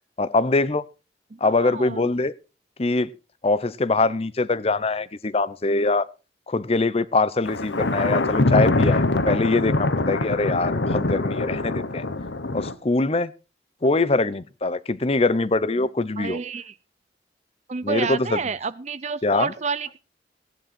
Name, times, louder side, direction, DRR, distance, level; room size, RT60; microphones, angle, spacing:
voice 1, 0.2-0.8 1.4-2.3 2.8-3.1 3.4-6.1 6.5-12.0 12.5-13.3 13.8-16.4 17.8-18.4 19.2-19.5, left 3 dB, 35° left, 0.7 m, -23 dB
voice 2, 1.3-2.1 13.8-13.9 16.2-16.7 17.7-20.0, right 5 dB, 40° right, 0.6 m, -29 dB
Thunder, 7.5-12.7, left 2 dB, 90° left, 1.2 m, -23 dB
16.5 x 10.5 x 4.3 m
head